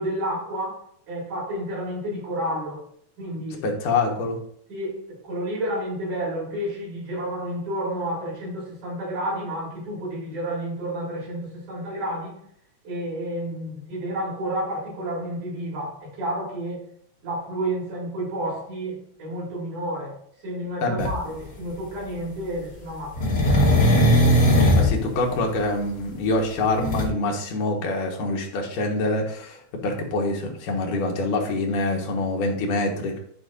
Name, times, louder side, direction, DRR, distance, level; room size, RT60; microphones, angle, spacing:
voice 1, 0.0-2.8 3.2-3.7 4.7-12.4 12.8-16.8 17.2-20.1 20.4-23.7, right 1 dB, 85° right, -5 dB, 5.4 m, -30 dB
voice 2, 3.6-4.4 20.8-21.1 24.8-33.2, left 2 dB, 90° left, 1 dB, 3.0 m, -25 dB
sound 1, 21.0-21.1 23.1-24.9 26.8-27.0, left 1 dB, 35° left, 1.6 m, -18 dB
11.5 x 5.5 x 2.6 m, 0.65 s
omnidirectional pair, 3.6 m